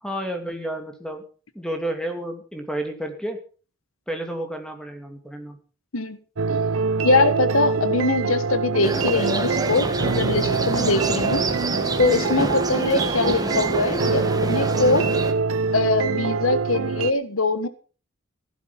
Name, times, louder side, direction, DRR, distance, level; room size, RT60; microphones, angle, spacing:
voice 1, 0.0-1.2 1.5-3.4 4.1-5.6, right 1 dB, 5° left, 4 dB, 2.6 m, -31 dB
sound 1, 6.4-17.1, right 5 dB, 90° right, 0.7 m, -25 dB
voice 2, 7.0-11.5 12.0-15.1 15.7-17.7, left 3 dB, 85° left, 13 dB, 1.3 m, -22 dB
sound 2, 8.8-15.3, right 2 dB, 20° right, 1.6 m, -27 dB
15.5 x 11.5 x 5.8 m, 0.39 s
head